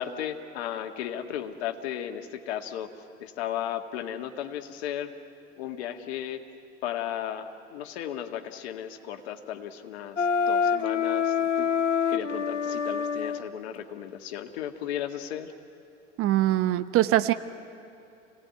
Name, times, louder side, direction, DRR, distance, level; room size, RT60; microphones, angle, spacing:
voice 1, 0.0-2.9 3.2-5.1 5.6-6.4 6.8-11.7 12.1-15.5, left 10 dB, 60° left, 6 dB, 1.9 m, -35 dB
Wind instrument woodwind instrument, 10.2-13.4, left 6 dB, 90° left, 0.7 m, -26 dB
voice 2, 16.2-17.3, right 14 dB, 40° right, 11 dB, 1.0 m, -22 dB
28.5 x 18.0 x 9.5 m, 2.7 s
figure-of-eight pair, 75°, 36 cm